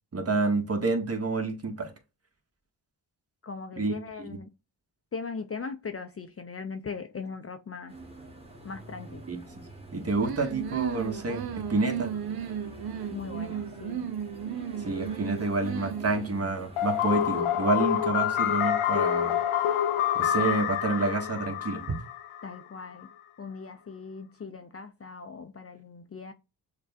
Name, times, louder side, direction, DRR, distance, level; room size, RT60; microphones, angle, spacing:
voice 1, 0.1-1.9 3.8-4.4 9.3-9.4 9.9-12.1 14.8-19.4 20.1-22.0, right 3 dB, 30° right, 1.1 m, -28 dB
voice 2, 3.4-4.5 5.1-8.0 8.6-9.2 13.1-14.1 22.4-23.1 23.4-26.3, left 5 dB, 30° left, 0.6 m, -39 dB
sound 1, 7.9-17.4, right 2 dB, 10° right, 1.5 m, -46 dB
sound 2, 10.2-16.6, right 9 dB, 50° right, 0.6 m, -35 dB
sound 3, 16.8-22.6, left 10 dB, 85° left, 0.6 m, -27 dB
6.4 x 2.2 x 2.6 m
supercardioid pair, 40°, 48 cm